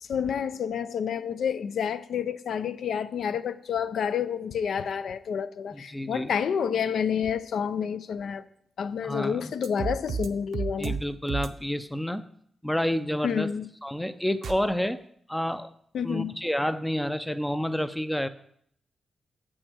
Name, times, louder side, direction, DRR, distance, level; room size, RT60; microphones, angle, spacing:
voice 1, 0.0-8.5 8.8-11.0 13.2-13.7 15.9-16.3, left 7 dB, 75° left, 0.4 m, -29 dB
voice 2, 5.7-6.3 9.0-9.5 10.8-12.3 12.6-13.5 13.8-15.0 15.3-15.7 16.0-18.3, equal, 5° left, 0.4 m, -29 dB
sound 1, 9.6-10.3 10.5-11.0 11.3-11.5 14.4-14.6, right 6 dB, 70° right, 0.6 m, -30 dB
8.1 x 6.3 x 6.2 m
wide cardioid pair, 155°, 0 cm